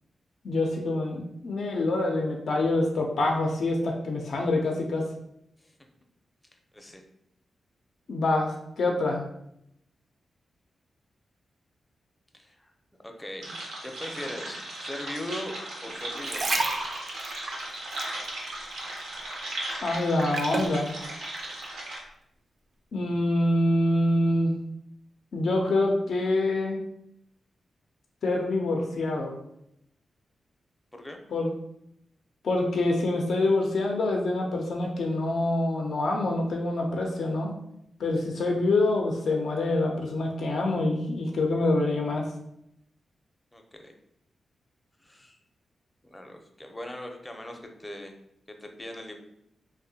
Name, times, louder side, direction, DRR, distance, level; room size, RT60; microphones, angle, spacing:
voice 1, 0.4-5.0 8.1-9.2 19.8-20.9 22.9-24.6 25.3-26.8 28.2-29.4 31.3-31.5 32.4-37.5 38.0-42.3, left 2 dB, 70° left, 1 dB, 0.4 m, -26 dB
voice 2, 12.3-12.7 13.0-13.5 13.8-15.6 15.8-16.8 30.9-31.2 43.5-43.9 45.0-45.4 46.0-48.1 48.5-49.1, left 1 dB, 15° left, 3 dB, 0.5 m, -40 dB
sound 1, 13.4-22.0, right 1 dB, 90° right, 0.7 m, -37 dB
sound 2, 16.0-19.1 19.4-20.8 21.4-21.5, right 2 dB, 55° right, 0.4 m, -31 dB
2.6 x 2.1 x 2.7 m, 0.77 s
supercardioid pair, 45°, 0 cm